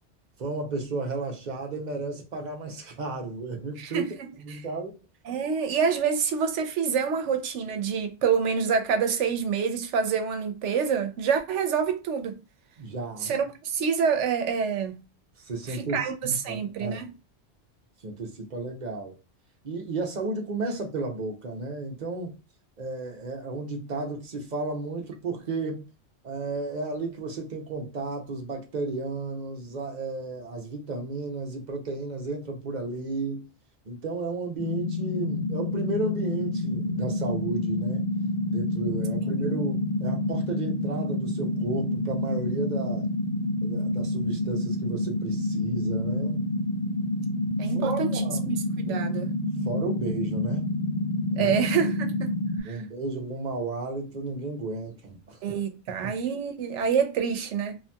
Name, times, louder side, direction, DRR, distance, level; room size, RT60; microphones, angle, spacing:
voice 1, 0.4-5.0 12.8-13.4 15.4-17.0 18.0-19.2 19.6-22.3 22.8-25.8 26.2-33.5 33.9-38.1 38.5-43.1 43.6-46.5 47.7-48.5 48.9-49.0 49.6-50.6 51.3-51.6 52.6-55.4 56.0-56.2, right 3 dB, 45° right, 0.6 m, -33 dB
voice 2, 3.8-4.1 4.5-4.6 5.3-12.4 13.2-15.0 15.7-17.1 39.2-39.6 47.6-48.1 48.5-49.3 51.4-52.3 52.6-52.8 55.4-57.8, right 6 dB, 90° right, 0.9 m, -27 dB
sound 1, 34.6-52.6, left 1 dB, 85° left, 1.2 m, -28 dB
2.8 x 2.7 x 2.2 m
omnidirectional pair, 1.2 m